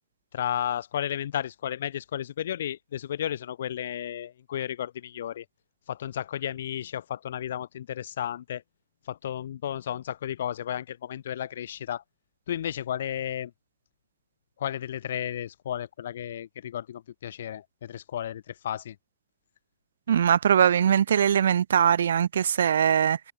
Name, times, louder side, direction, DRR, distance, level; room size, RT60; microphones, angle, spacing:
voice 1, 0.3-5.4 5.9-8.6 9.1-12.0 12.5-13.5 14.6-19.0, left 10 dB, 80° left, 0.9 m, -33 dB
voice 2, 20.1-23.2, right 8 dB, 85° right, 0.4 m, -21 dB
hypercardioid pair, 120°, 0 cm